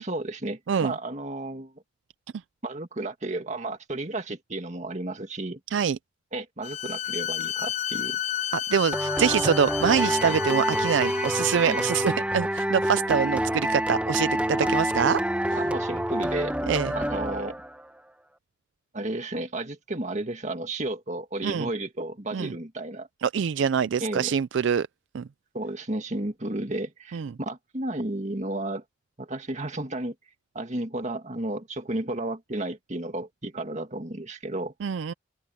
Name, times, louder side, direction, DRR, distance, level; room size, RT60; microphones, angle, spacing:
voice 1, 0.0-1.7 2.6-5.6 6.3-8.2 10.2-10.4 11.7-11.8 14.6-14.7 15.5-16.5 16.9-17.6 18.9-23.1 24.0-24.3 25.5-28.8 29.2-30.1 30.5-34.7, right 2 dB, 35° right, 2.1 m, -32 dB
Bowed string instrument, 6.6-12.1, left 11 dB, 35° left, 0.4 m, -32 dB
voice 2, 8.5-15.2 15.5-15.6 16.7-16.9 21.4-21.7 22.3-22.5 23.2-24.9 25.1-25.3 27.1-27.3 34.8-35.1, right 7 dB, 70° right, 0.4 m, -25 dB
sound 1, 8.9-17.8, right 1 dB, 5° right, 1.5 m, -27 dB
open air
head